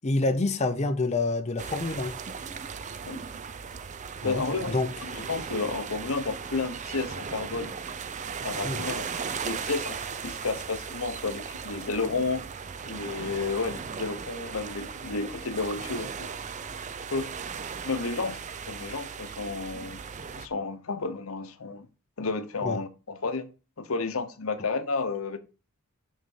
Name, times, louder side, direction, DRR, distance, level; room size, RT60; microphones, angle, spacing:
voice 1, 0.0-2.2 4.2-4.9 8.6-8.8 22.6-22.8, left 2 dB, 30° left, 0.6 m, -27 dB
sound 1, 1.6-20.5, right 6 dB, 35° right, 0.5 m, -37 dB
voice 2, 4.2-4.8 5.0-7.8 8.4-9.1 9.4-12.5 12.9-16.3 17.1-17.3 17.8-18.4 18.6-20.0 20.4-21.9 22.2-23.5 23.8-25.4, left 4 dB, 70° left, 0.9 m, -31 dB
6.4 x 5.5 x 5.5 m
head